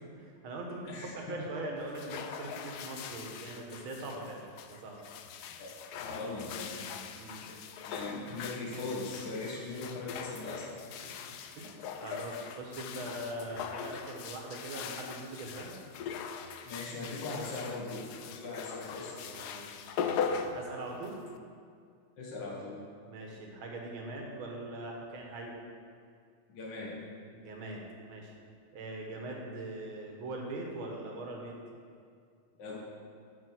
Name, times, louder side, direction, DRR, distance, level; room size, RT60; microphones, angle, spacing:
voice 1, 0.1-4.4 4.7-5.0 6.7-7.4 11.0-15.8 19.1-19.8 20.4-21.2 23.0-25.6 27.3-28.3 28.7-31.6, right 2 dB, 75° right, 0 dB, 2.1 m, -42 dB
sound 1, 1.8-21.4, left 6 dB, 80° left, 0.9 m, -41 dB
voice 2, 5.9-6.8 7.4-7.5 7.8-10.8 11.1-11.2 16.7-19.2 22.2-22.8 26.5-27.0 32.6-32.8, left 3 dB, 60° left, -5 dB, 2.1 m, -40 dB
12.5 x 5.8 x 4.5 m, 2.2 s
omnidirectional pair, 2.3 m